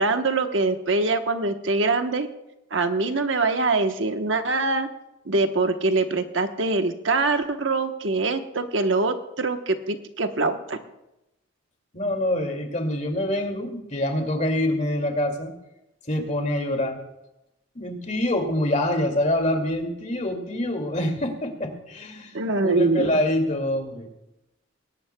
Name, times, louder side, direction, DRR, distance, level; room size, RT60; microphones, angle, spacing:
voice 1, 0.0-2.3 2.7-4.9 5.3-10.8 22.3-23.1, right 3 dB, 70° right, 6 dB, 1.1 m, -23 dB
voice 2, 11.9-15.5 16.1-17.0 17.8-22.3 22.6-24.1, left 1 dB, 35° left, 3 dB, 2.3 m, -25 dB
21.0 x 18.0 x 2.3 m, 0.90 s
head